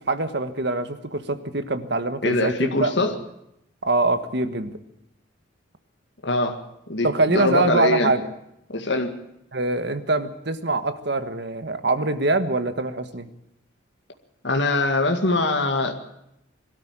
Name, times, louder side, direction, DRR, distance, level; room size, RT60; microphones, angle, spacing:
voice 1, 0.1-3.1 3.8-4.7 7.0-8.3 9.5-13.3, right 2 dB, 60° right, 10 dB, 1.5 m, -24 dB
voice 2, 2.2-3.1 6.2-6.6 6.9-8.1 8.7-9.2 14.4-16.0, left 2 dB, 65° left, 4 dB, 2.0 m, -23 dB
22.0 x 13.0 x 8.9 m, 0.82 s
head